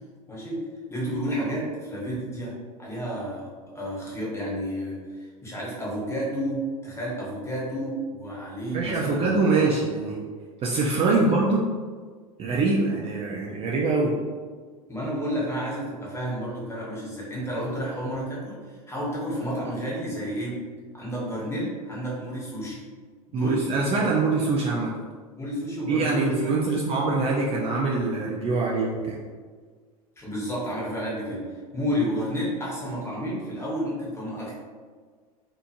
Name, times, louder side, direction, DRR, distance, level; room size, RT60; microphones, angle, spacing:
voice 1, 0.3-0.6 0.9-9.4 11.2-11.3 14.9-20.6 20.9-22.8 23.3-23.6 23.9-24.1 25.3-26.9 30.2-34.5, equal, 15° left, -5 dB, 1.0 m, -31 dB
voice 2, 8.7-10.2 10.6-11.6 12.4-14.1 23.3-24.9 25.9-29.2, right 3 dB, 30° right, -3 dB, 0.4 m, -24 dB
2.8 x 2.5 x 2.5 m, 1.5 s
hypercardioid pair, 85°, 19 cm